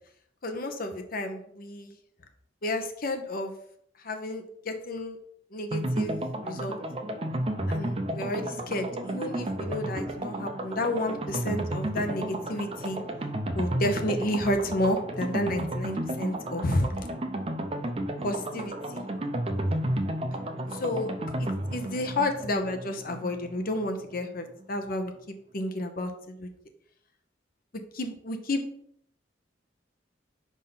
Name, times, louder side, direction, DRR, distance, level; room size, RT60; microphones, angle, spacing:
voice 1, 0.4-1.9 2.6-3.5 4.0-5.2 5.5-6.8 7.7-13.0 13.5-16.9 18.2-19.0 20.7-21.1 21.4-26.5 27.9-28.6, left 1 dB, 50° left, 5 dB, 0.8 m, -31 dB
sound 1, 5.7-24.3 24.6-24.7 24.9-25.0, right 1 dB, 35° right, 0.6 m, -32 dB
5.4 x 3.7 x 5.8 m, 0.68 s
head